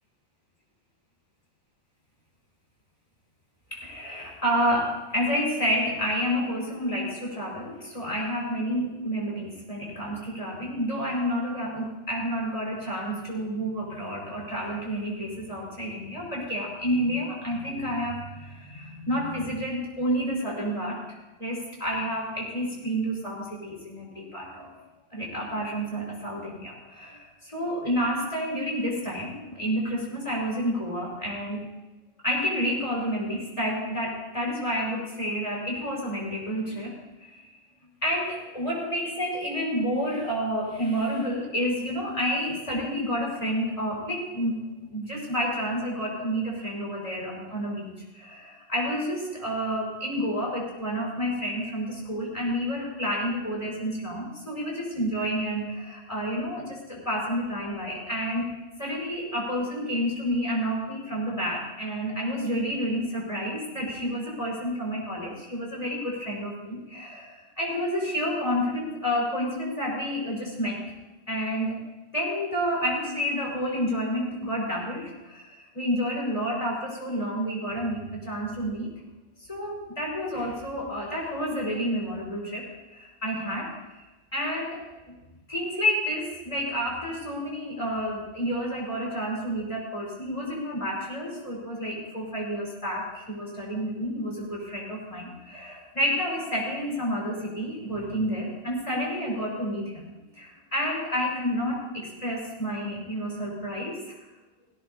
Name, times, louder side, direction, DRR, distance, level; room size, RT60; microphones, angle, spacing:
voice 1, 3.7-21.0 21.4-24.7 25.1-31.7 32.2-37.0 37.3-37.5 38.0-58.5 58.8-70.8 71.3-71.8 72.1-78.9 79.5-84.0 84.3-85.1 85.5-104.2, equal, 30° left, -3 dB, 5.1 m, -30 dB
17.5 x 17.0 x 2.8 m, 1.1 s
omnidirectional pair, 1.1 m